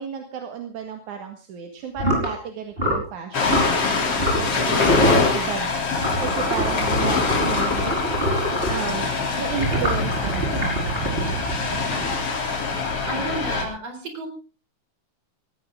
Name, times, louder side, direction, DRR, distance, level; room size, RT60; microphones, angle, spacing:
voice 1, 0.0-7.8 8.7-11.3, right 7 dB, 80° right, 5 dB, 3.2 m, -33 dB
sound 1, 2.0-2.3 2.8-3.1 3.4-3.7 4.2-4.6 4.8-5.3 6.0-8.8 9.5-12.3, right 1 dB, 15° right, 5.5 m, -25 dB
Ocean, 3.3-13.6, left 4 dB, 50° left, 4.0 m, -24 dB
voice 2, 13.0-14.3, right 2 dB, 55° right, 5 dB, 5.4 m, -31 dB
17.0 x 17.0 x 3.7 m, 0.34 s
omnidirectional pair, 3.4 m